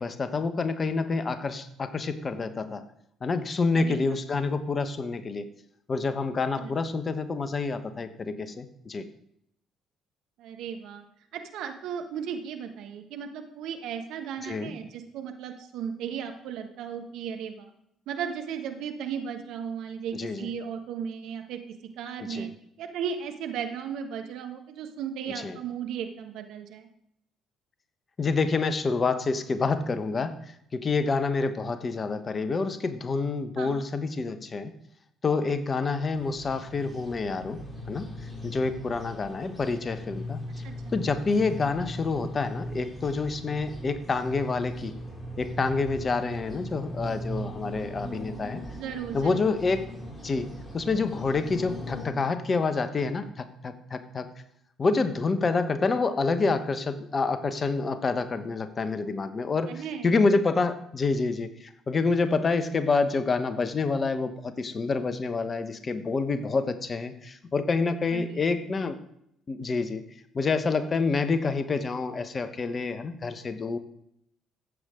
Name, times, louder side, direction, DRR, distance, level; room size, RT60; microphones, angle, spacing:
voice 1, 0.0-2.8 3.2-5.4 5.9-9.0 14.4-14.8 20.1-20.5 22.2-22.5 25.4-25.6 28.2-30.3 30.7-34.7 35.2-37.6 37.9-38.1 38.4-40.6 40.9-45.0 45.4-48.6 49.1-49.8 50.2-50.5 50.7-54.3 54.8-69.0 69.5-70.0 70.3-73.8, left 4 dB, 40° left, 10 dB, 1.2 m, -27 dB
voice 2, 10.4-11.0 11.3-17.7 18.1-22.5 22.8-26.9 33.6-33.8 40.6-40.7 48.7-49.4 59.7-60.1 68.1-68.5, right 7 dB, 65° right, 6 dB, 1.3 m, -35 dB
sound 1, 36.1-52.1, equal, 15° left, 5.4 m, -39 dB
14.0 x 8.4 x 3.8 m, 0.74 s
hypercardioid pair, 50°, 0 cm